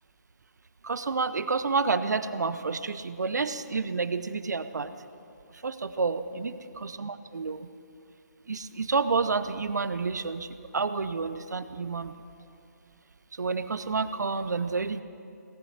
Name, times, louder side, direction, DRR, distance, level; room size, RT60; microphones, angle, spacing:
voice 1, 0.8-4.9 5.6-7.7 8.5-12.1 13.3-15.0, right 4 dB, 70° right, 13 dB, 0.7 m, -29 dB
17.5 x 13.0 x 5.8 m, 2.6 s
figure-of-eight pair, 145°, 10 cm